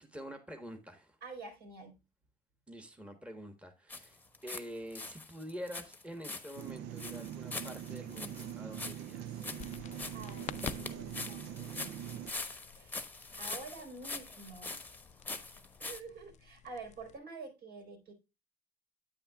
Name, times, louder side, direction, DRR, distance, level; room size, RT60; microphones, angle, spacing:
voice 1, 0.0-1.2 2.7-9.5, equal, 5° right, 1.2 m, -47 dB
voice 2, 1.2-2.0 9.8-11.8 12.8-14.8 15.8-18.1, right 3 dB, 70° right, 3.9 m, -48 dB
sound 1, 3.9-4.7 4.9-16.0, left 3 dB, 10° left, 1.0 m, -43 dB
sound 2, 6.6-12.3, right 10 dB, 85° right, 0.6 m, -43 dB
sound 3, 9.6-17.2, left 9 dB, 45° left, 0.4 m, -51 dB
8.9 x 8.6 x 2.3 m
cardioid pair, 110°, 17 cm